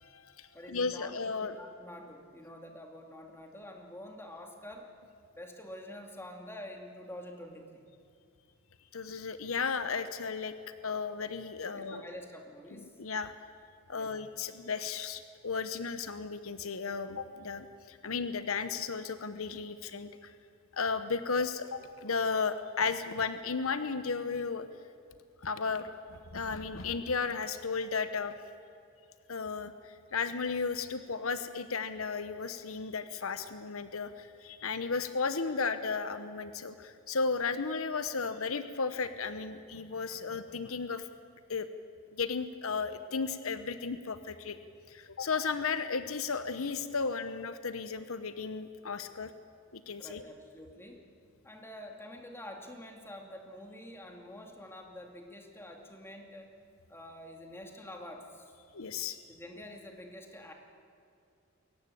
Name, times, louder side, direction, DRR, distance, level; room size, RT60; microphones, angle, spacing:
voice 1, 0.0-1.6 8.9-10.6 10.8-12.0 12.7-13.3 13.9-20.3 20.7-24.7 25.4-28.3 29.3-41.1 41.5-41.7 42.1-44.6 44.9-49.3 49.7-50.2 58.7-59.2, left 5 dB, 75° left, 11 dB, 1.0 m, -34 dB
voice 2, 0.5-4.9 5.3-7.8 11.7-13.0 13.9-14.2 50.0-51.1 51.4-56.5 56.9-58.5 59.3-60.5, left 1 dB, 10° left, 3 dB, 2.5 m, -47 dB
22.0 x 18.0 x 8.6 m, 2.5 s
head